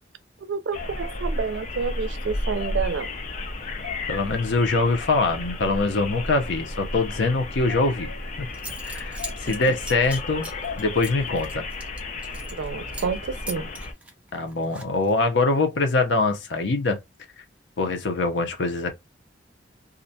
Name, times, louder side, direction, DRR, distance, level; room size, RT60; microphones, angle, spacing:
voice 1, 0.4-3.1 9.5-9.6 12.6-13.7, right 5 dB, 85° right, 0.4 m, -29 dB
sound 1, 0.7-13.9, left 2 dB, 45° left, 0.5 m, -33 dB
voice 2, 3.8-8.1 8.4-8.5 8.8-10.5 10.8-11.6 14.3-17.0 17.8-18.9, left 3 dB, 80° left, 0.7 m, -23 dB
Zipper (clothing) / Coin (dropping), 8.2-8.3 8.5-12.7 12.9-13.2 13.5-15.2, right 2 dB, 5° right, 0.5 m, -40 dB
2.5 x 2.1 x 2.6 m
head